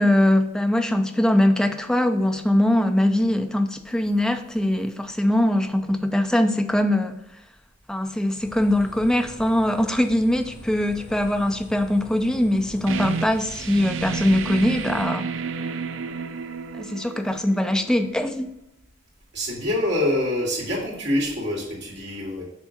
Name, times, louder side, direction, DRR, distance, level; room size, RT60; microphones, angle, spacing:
voice 1, 0.0-7.1 7.9-15.3 16.8-18.5, left 1 dB, 5° left, 6 dB, 0.4 m, -22 dB
sound 1, 8.4-15.0, left 1 dB, 25° left, 2.3 m, -43 dB
sound 2, 12.9-18.3, right 5 dB, 75° right, 0.5 m, -31 dB
voice 2, 19.3-22.4, left 1 dB, 60° right, -4 dB, 2.5 m, -25 dB
6.2 x 3.7 x 5.1 m, 0.79 s
head